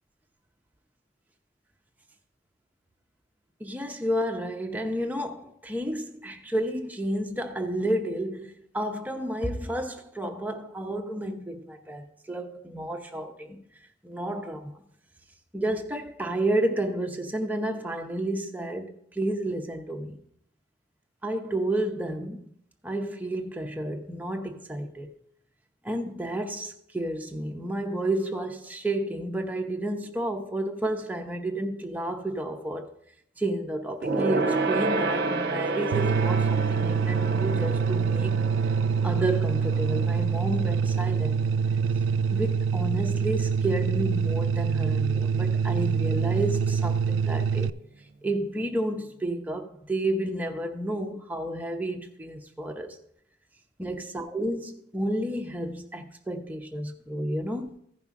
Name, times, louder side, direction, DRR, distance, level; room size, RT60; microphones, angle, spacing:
voice 1, 3.6-13.6 14.0-14.8 15.5-20.2 21.2-22.5 22.8-25.2 25.8-32.9 33.4-38.4 39.0-41.4 42.3-47.7 48.2-53.0 53.8-57.7, right 1 dB, 10° right, 0.6 m, -31 dB
Gong, 34.0-43.8 44.1-44.4 44.7-44.8, right 3 dB, 55° right, 0.8 m, -31 dB
sound 1, 35.9-47.7, right 6 dB, 85° right, 0.3 m, -25 dB
15.0 x 5.5 x 3.6 m
head